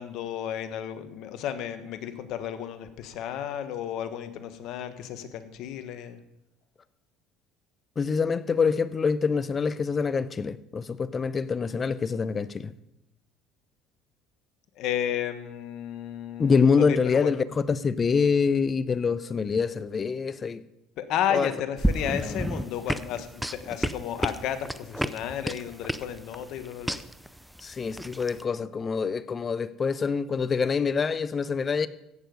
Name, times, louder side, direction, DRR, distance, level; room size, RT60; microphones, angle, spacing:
voice 1, 0.0-6.2 14.8-17.3 21.0-27.0, left 9 dB, 65° left, 1.3 m, -33 dB
voice 2, 8.0-12.7 16.4-20.6 21.3-21.5 22.2-22.5 27.6-31.9, left 5 dB, 30° left, 0.6 m, -25 dB
sound 1, 21.8-28.4, equal, ahead, 0.6 m, -31 dB
16.0 x 6.9 x 5.3 m
supercardioid pair, 90°, 0 cm